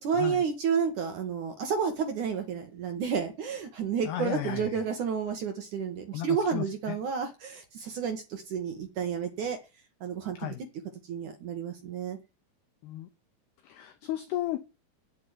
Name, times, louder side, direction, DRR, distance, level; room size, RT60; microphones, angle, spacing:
voice 1, 0.0-9.6 10.0-10.5 11.0-12.2, right 6 dB, 70° right, 5 dB, 1.9 m, -31 dB
voice 2, 4.0-4.7 6.1-6.7 10.4-10.6 12.8-13.1 13.6-14.6, left 13 dB, 75° left, 9 dB, 2.4 m, -33 dB
9.0 x 8.9 x 9.4 m, 0.29 s
omnidirectional pair, 5.9 m